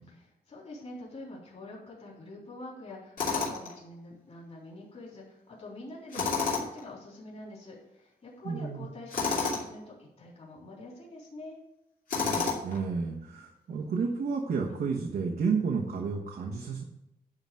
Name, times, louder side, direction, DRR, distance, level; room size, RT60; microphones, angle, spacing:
voice 1, 0.1-11.6, left 2 dB, 40° left, -5 dB, 3.6 m, -46 dB
Tools, 3.2-3.7 6.1-6.8 9.1-9.7 12.1-12.8, left 5 dB, 60° left, 2.6 m, -29 dB
voice 2, 8.4-8.8 12.1-16.8, right 5 dB, 75° right, -2 dB, 1.4 m, -31 dB
11.5 x 4.0 x 7.7 m, 0.87 s
wide cardioid pair, 160°, 16 cm